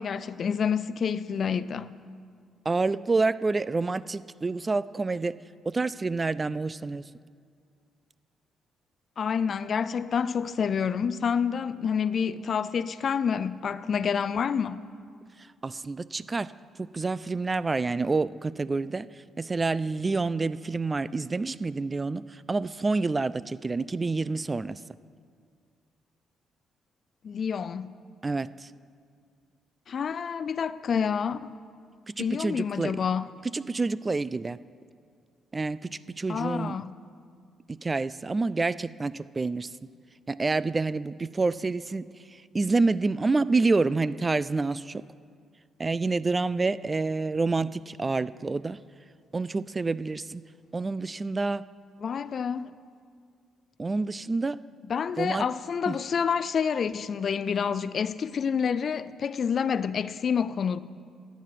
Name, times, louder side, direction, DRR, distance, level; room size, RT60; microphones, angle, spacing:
voice 1, 0.0-1.9 9.2-14.8 27.2-27.9 29.9-31.6 32.2-33.3 36.3-36.9 52.0-52.7 54.9-60.8, left 7 dB, 50° left, 0.4 m, -28 dB
voice 2, 2.7-5.4 5.7-7.0 15.4-16.5 16.8-24.8 28.2-28.7 32.1-32.9 33.5-34.6 35.5-36.8 37.7-39.7 40.3-45.0 45.8-48.8 49.3-50.4 50.7-51.6 53.8-54.6 55.2-55.5 55.9-56.0, right 3 dB, 25° right, 0.3 m, -28 dB
14.0 x 9.3 x 5.8 m
cardioid pair, 90°, 0 cm